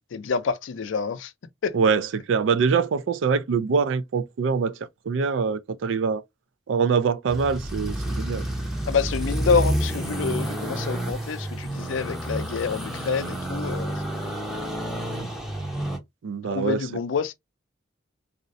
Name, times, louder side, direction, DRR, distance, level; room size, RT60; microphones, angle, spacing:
voice 1, 0.0-1.3 1.6-1.7 8.9-14.2 16.4-17.3, left 5 dB, 85° left, 0.4 m, -27 dB
voice 2, 1.7-4.8 5.1-6.2 6.7-8.4 16.2-16.9, right 5 dB, 85° right, 0.4 m, -24 dB
sound 1, 7.3-16.0, right 1 dB, ahead, 0.5 m, -29 dB
2.5 x 2.0 x 2.5 m
head